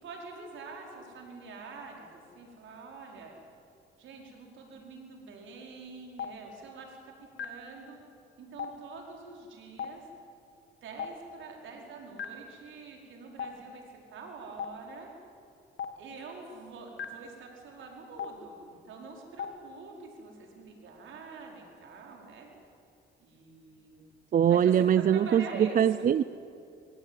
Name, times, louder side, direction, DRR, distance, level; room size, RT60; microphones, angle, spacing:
voice 1, 0.0-3.3 4.0-7.0 7.4-8.0 8.4-10.0 10.8-13.8 14.1-15.1 16.0-22.5 23.2-24.0 24.5-26.0, right 4 dB, 75° right, 1 dB, 5.0 m, -45 dB
Stream, 6.2-6.3 7.4-7.5 8.6-8.7 9.8-9.9 11.0-11.1 12.2-12.3 13.4-13.5 14.6-14.7 15.8-15.9 17.0-17.1 18.2-18.3 19.4-19.5, left 8 dB, 75° left, 2.1 m, -35 dB
voice 2, 24.3-26.2, right 9 dB, 45° right, 16 dB, 0.5 m, -23 dB
23.5 x 17.5 x 9.1 m, 2.5 s
cardioid pair, 90°, 20 cm